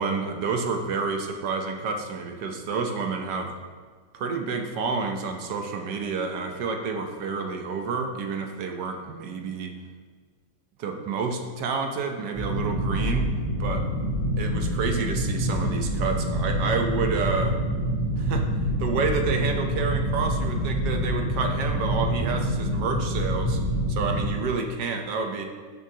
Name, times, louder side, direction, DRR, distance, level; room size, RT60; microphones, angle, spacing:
voice 1, 0.0-3.5 4.1-9.7 10.8-13.3 13.6-13.8 14.4-17.6 18.2-18.5 18.8-23.6 23.9-25.4, right 4 dB, 65° right, 4 dB, 1.3 m, -29 dB
sound 1, 12.3-24.3, equal, 20° right, 2.7 m, -26 dB
13.5 x 6.6 x 2.8 m, 1.5 s
omnidirectional pair, 2.1 m